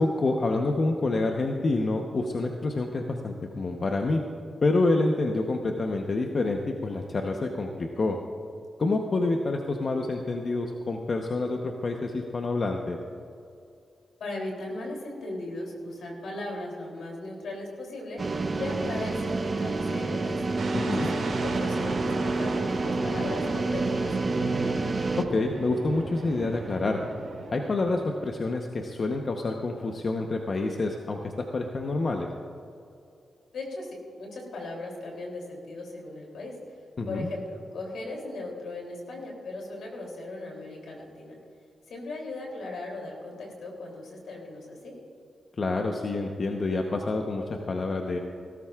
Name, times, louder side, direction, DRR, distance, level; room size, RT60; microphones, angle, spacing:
voice 1, 0.0-4.2 4.6-8.2 8.8-13.0 20.7-21.1 25.2-27.0 27.5-32.3 37.0-37.3 45.6-48.2, left 2 dB, 55° left, 3 dB, 0.9 m, -27 dB
voice 2, 14.2-20.4 20.9-24.8 33.5-36.6 37.1-41.3 41.9-45.0, left 2 dB, 80° left, 0 dB, 3.1 m, -38 dB
sound 1, 18.2-25.2, right 3 dB, 40° right, 0.8 m, -28 dB
sound 2, 20.6-28.4, right 3 dB, 70° right, 2.8 m, -37 dB
18.0 x 13.0 x 2.4 m, 2.5 s
cardioid pair, 55°, 0 cm